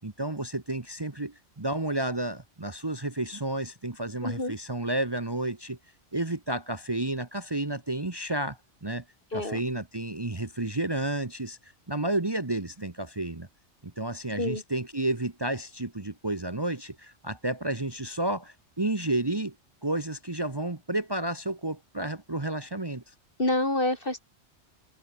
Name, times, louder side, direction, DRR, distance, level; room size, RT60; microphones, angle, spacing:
voice 1, 0.0-5.8 6.1-9.0 9.3-13.5 13.8-19.5 19.8-23.0, right 1 dB, 20° right, 1.3 m, -31 dB
voice 2, 4.2-4.5 9.3-9.6 14.4-14.6 23.4-24.2, left 1 dB, 50° left, 5.2 m, -27 dB
omnidirectional pair, 1.2 m